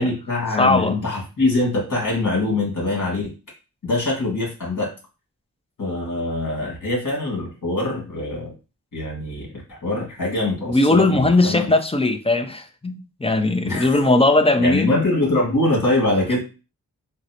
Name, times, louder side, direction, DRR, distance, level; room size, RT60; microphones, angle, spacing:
voice 1, 0.0-3.3 3.8-4.9 5.8-8.5 8.9-11.7 13.6-14.0 14.6-16.4, left 2 dB, 55° left, 1.8 m, -23 dB
voice 2, 0.6-0.9 10.7-14.9, left 2 dB, 15° left, 0.5 m, -18 dB
3.9 x 2.1 x 2.8 m
cardioid pair, 60°, 36 cm